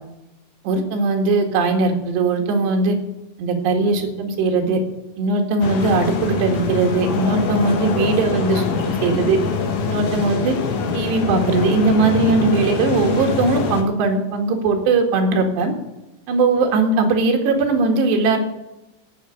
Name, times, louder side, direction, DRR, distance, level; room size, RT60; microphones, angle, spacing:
voice 1, 0.6-3.0 3.4-4.8 5.2-9.4 9.9-10.6 10.9-15.7 16.3-18.4, right 3 dB, 65° right, 2 dB, 3.8 m, -19 dB
sound 1, 5.6-13.8, left 5 dB, 65° left, 2.0 m, -24 dB
15.0 x 5.9 x 8.7 m, 0.95 s
omnidirectional pair, 5.8 m